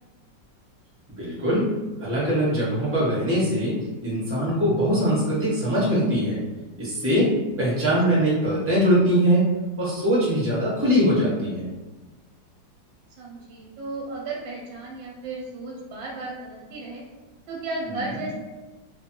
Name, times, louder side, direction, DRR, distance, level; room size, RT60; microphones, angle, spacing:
voice 1, 1.2-1.7 2.0-6.4 6.8-9.5 9.8-11.7, equal, 15° right, -9 dB, 0.4 m, -22 dB
voice 2, 13.2-17.0 17.5-18.3, right 3 dB, 85° right, -3 dB, 1.3 m, -34 dB
3.1 x 2.2 x 2.9 m, 1.2 s
omnidirectional pair, 2.0 m